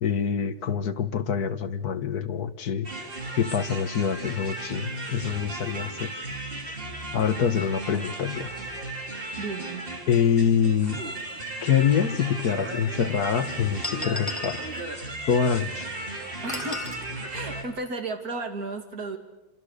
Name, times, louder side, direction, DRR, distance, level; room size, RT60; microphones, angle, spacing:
voice 1, 0.0-2.9 3.4-6.1 7.1-8.5 10.1-11.0 11.6-14.6 15.3-15.9, left 7 dB, 55° left, 10 dB, 1.5 m, -25 dB
sound 1, 2.8-17.6, right 2 dB, 25° right, 3.2 m, -35 dB
voice 2, 9.4-9.9 16.4-16.8 17.3-19.2, right 3 dB, 45° right, 4 dB, 3.0 m, -33 dB
sound 2, 11.8-11.9 12.8-12.9 13.8-14.7 16.5-17.0, left 2 dB, 15° left, 1.7 m, -34 dB
28.0 x 25.5 x 6.6 m, 1.0 s
omnidirectional pair, 2.2 m